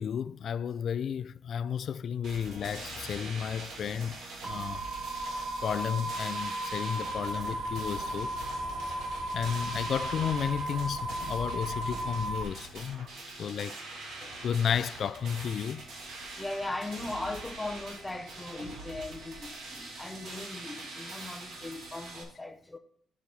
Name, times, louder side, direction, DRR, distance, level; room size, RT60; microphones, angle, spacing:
voice 1, 0.0-4.8 5.6-8.3 9.3-13.1 13.4-13.8 14.4-15.8, left 8 dB, 60° left, 0.3 m, -33 dB
sound 1, 2.2-22.2, right 2 dB, 75° right, 2.3 m, -44 dB
sound 2, 4.4-12.4, right 1 dB, 10° right, 0.9 m, -35 dB
sound 3, 7.0-12.9, left 4 dB, 85° left, 1.1 m, -46 dB
voice 2, 16.4-22.8, left 2 dB, 15° left, 0.7 m, -39 dB
6.8 x 6.1 x 5.4 m
cardioid pair, 90°, 0 cm